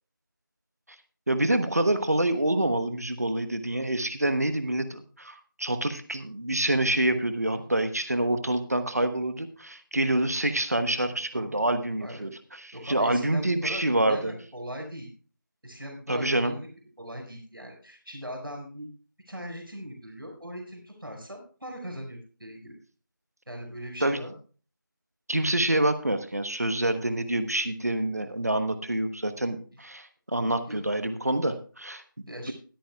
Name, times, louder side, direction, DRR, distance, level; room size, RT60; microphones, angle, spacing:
voice 1, 1.3-14.3 16.1-16.6 24.0-24.2 25.3-32.5, right 1 dB, 45° right, 10 dB, 1.1 m, -27 dB
voice 2, 12.0-12.3 12.7-15.1 15.6-16.7 17.0-18.9 19.3-22.8 23.5-24.3 30.4-30.8 32.3-32.5, equal, 80° right, 1 dB, 5.5 m, -40 dB
21.0 x 9.1 x 2.3 m, 0.38 s
figure-of-eight pair, 175°, 11 cm